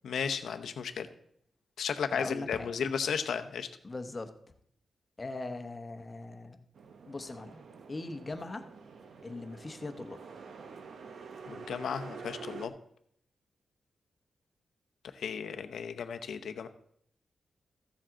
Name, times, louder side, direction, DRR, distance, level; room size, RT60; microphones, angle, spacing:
voice 1, 0.0-1.1 1.8-3.7 11.5-12.7 15.2-16.7, left 7 dB, 85° left, 8 dB, 0.7 m, -34 dB
voice 2, 2.1-2.9 3.8-4.3 5.2-6.7 7.0-8.6 9.2-10.2, left 2 dB, 25° left, 7 dB, 0.9 m, -40 dB
sound 1, 6.7-12.7, right 5 dB, 65° right, 0.8 m, -47 dB
14.0 x 7.5 x 3.8 m, 0.68 s
wide cardioid pair, 150°, 0 cm